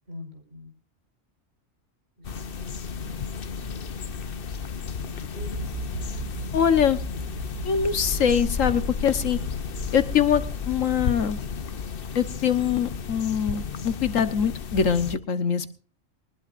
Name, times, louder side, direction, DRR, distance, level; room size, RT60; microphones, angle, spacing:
voice 1, 0.1-0.7 2.2-3.3 5.0-6.3, left 3 dB, 55° right, 4 dB, 5.4 m, -44 dB
sound 1, 2.2-15.2, left 6 dB, 50° left, 1.0 m, -33 dB
sound 2, 5.4-10.5, right 2 dB, 70° right, 1.3 m, -37 dB
voice 2, 6.5-7.0 7.6-9.4 9.9-11.4 12.1-15.7, left 7 dB, 80° left, 11 dB, 1.6 m, -23 dB
22.5 x 19.5 x 2.6 m, 0.38 s
omnidirectional pair, 1.3 m